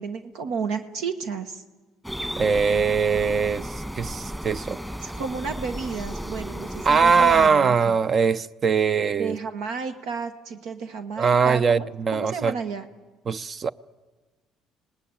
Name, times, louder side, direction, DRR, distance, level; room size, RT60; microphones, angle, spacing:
voice 1, 0.0-1.6 5.0-8.0 9.1-12.9, right 5 dB, 75° right, 1.2 m, -32 dB
sound 1, 2.0-7.5, equal, 10° right, 1.7 m, -34 dB
voice 2, 2.4-4.8 6.8-9.4 11.2-12.5 13.3-13.7, right 5 dB, 40° right, 0.7 m, -21 dB
26.0 x 18.5 x 8.9 m
supercardioid pair, 80°, 0 cm